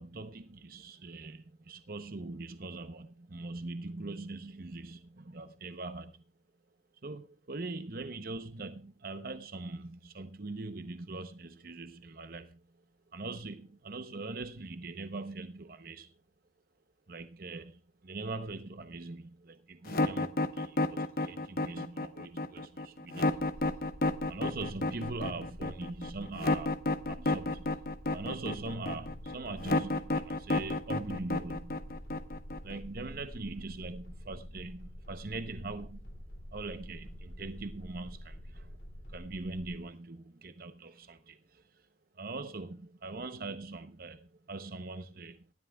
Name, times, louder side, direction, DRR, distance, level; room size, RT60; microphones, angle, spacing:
voice 1, 0.0-6.2 7.0-12.6 13.1-16.1 17.1-23.8 24.3-26.8 27.1-27.7 28.1-31.8 32.6-36.1 36.5-38.8 39.1-41.8 42.1-45.5, right 3 dB, 50° right, 0.8 m, -42 dB
sound 1, 19.9-32.8, left 2 dB, 50° left, 1.0 m, -31 dB
sound 2, 23.3-39.8, equal, 85° left, 2.7 m, -48 dB
19.0 x 13.5 x 2.3 m
head